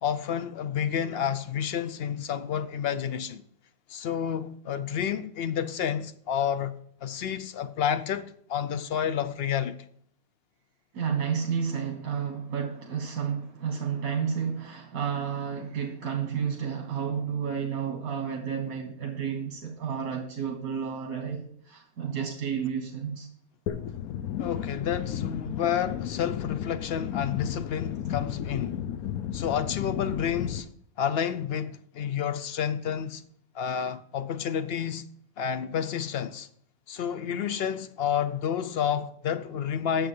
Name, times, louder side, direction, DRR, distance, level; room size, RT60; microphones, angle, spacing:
voice 1, 0.0-3.4 3.9-6.7 7.0-9.8 24.4-28.8 29.3-30.7 31.0-33.2 33.5-35.0 35.4-36.5 36.9-40.1, left 8 dB, 60° left, 0.7 m, -30 dB
voice 2, 10.9-23.3, right 7 dB, 75° right, 1.6 m, -31 dB
sound 1, 23.7-30.6, left 10 dB, 80° left, 1.1 m, -33 dB
9.3 x 7.0 x 5.4 m
omnidirectional pair, 1.5 m